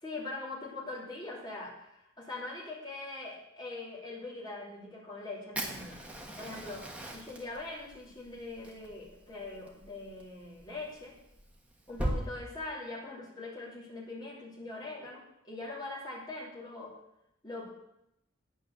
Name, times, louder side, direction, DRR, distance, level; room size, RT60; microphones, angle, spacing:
voice 1, 0.0-6.1 6.4-6.8 7.1-11.1 11.9-16.9 17.4-17.7, left 2 dB, 20° left, -5 dB, 2.7 m, -42 dB
Fire, 5.5-12.2, right 1 dB, 5° right, 1.3 m, -40 dB
9.3 x 9.2 x 6.5 m, 0.83 s
head